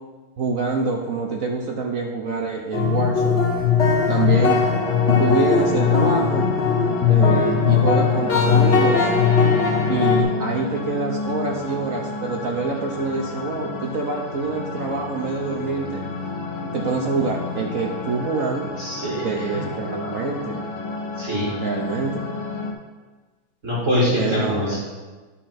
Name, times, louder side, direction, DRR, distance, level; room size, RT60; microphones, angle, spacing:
voice 1, 0.4-3.4 4.0-4.6 5.2-6.5 7.1-9.1 9.9-16.0 16.6-18.7 19.2-20.7 21.6-22.2 24.2-24.8, right 4 dB, 60° right, 1 dB, 0.9 m, -26 dB
sound 1, 2.7-10.2, left 5 dB, 40° left, 1.4 m, -19 dB
sound 2, 3.8-22.7, left 3 dB, 90° left, 1.9 m, -32 dB
voice 2, 18.8-19.3 21.2-21.6 23.6-24.8, left 1 dB, 35° right, -9 dB, 2.5 m, -23 dB
11.0 x 4.4 x 5.8 m, 1.3 s
omnidirectional pair, 2.3 m